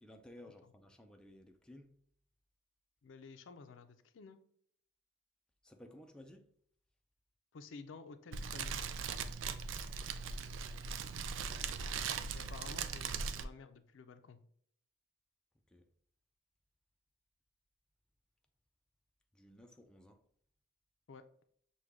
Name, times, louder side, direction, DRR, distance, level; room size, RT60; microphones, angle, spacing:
voice 1, 0.0-1.9 5.6-6.5 11.6-11.8 15.7-15.8 19.4-20.2, left 1 dB, 5° left, 0.3 m, -56 dB
voice 2, 3.0-4.4 7.5-8.8 12.3-14.4 21.1-21.2, left 4 dB, 85° left, 0.4 m, -52 dB
Fire, 8.3-13.4, right 6 dB, 85° right, 0.4 m, -39 dB
6.3 x 2.2 x 3.4 m
head